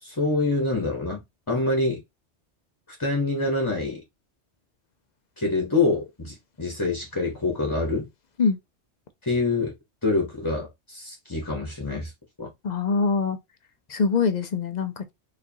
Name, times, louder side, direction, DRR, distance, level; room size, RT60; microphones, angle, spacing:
voice 1, 0.0-2.0 3.0-4.0 5.4-8.1 9.2-9.7 10.0-12.1 12.4-12.5, left 3 dB, 20° left, 0.9 m, -26 dB
voice 2, 12.6-13.4 13.9-15.1, left 5 dB, 50° left, 0.5 m, -23 dB
4.8 x 2.5 x 2.7 m
omnidirectional pair, 1.2 m